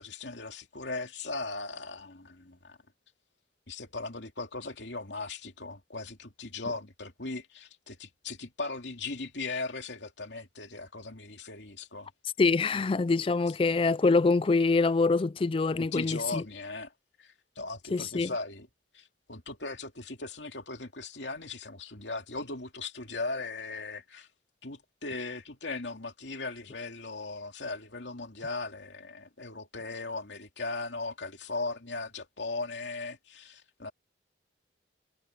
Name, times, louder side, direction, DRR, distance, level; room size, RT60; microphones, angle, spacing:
voice 1, 0.0-2.8 3.7-12.1 12.7-12.9 13.5-13.6 15.8-16.9 17.2-18.7 18.9-24.3 24.6-33.9, left 3 dB, 75° left, 2.7 m, -38 dB
voice 2, 12.4-16.4 17.9-18.3, left 3 dB, 30° left, 0.3 m, -25 dB
head